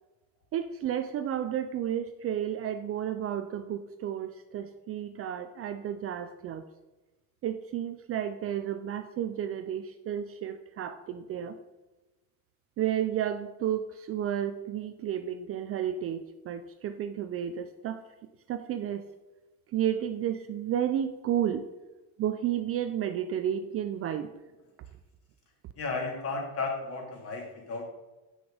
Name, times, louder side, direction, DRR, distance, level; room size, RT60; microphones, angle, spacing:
voice 1, 0.5-6.6 7.4-11.6 12.8-18.0 18.5-19.0 19.7-21.7 22.2-24.3, right 10 dB, 40° right, 9 dB, 0.4 m, -32 dB
voice 2, 25.7-27.9, left 3 dB, 40° left, 1 dB, 2.1 m, -34 dB
8.0 x 6.1 x 4.9 m, 1.1 s
cardioid pair, 150°, 37 cm